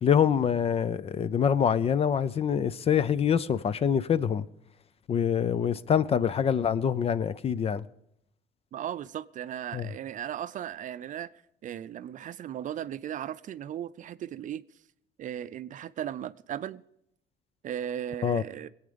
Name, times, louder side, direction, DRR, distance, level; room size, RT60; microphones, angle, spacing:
voice 1, 0.0-4.5 5.1-7.8 9.7-9.9 18.2-18.4, left 8 dB, 35° left, 0.5 m, -25 dB
voice 2, 8.7-11.3 11.6-14.6 15.2-16.8 17.6-18.7, right 10 dB, 50° right, 0.5 m, -36 dB
21.0 x 8.7 x 5.2 m
cardioid pair, 110°, 17 cm